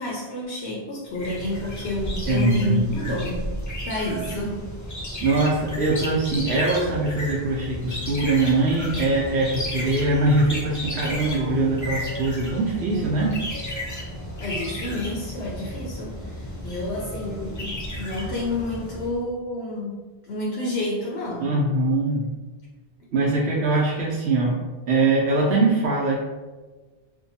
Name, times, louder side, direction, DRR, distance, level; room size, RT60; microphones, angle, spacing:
voice 1, 0.0-3.4 3.8-4.6 14.4-20.0 20.3-21.5, left 1 dB, 80° left, -4 dB, 0.8 m, -29 dB
sound 1, 1.1-19.2, left 1 dB, 30° left, 0.3 m, -33 dB
voice 2, 2.3-3.2 5.2-13.4 21.4-22.3 23.1-24.6 24.9-26.2, right 2 dB, 75° right, -4 dB, 0.8 m, -22 dB
2.6 x 2.2 x 2.6 m, 1.3 s
omnidirectional pair, 1.1 m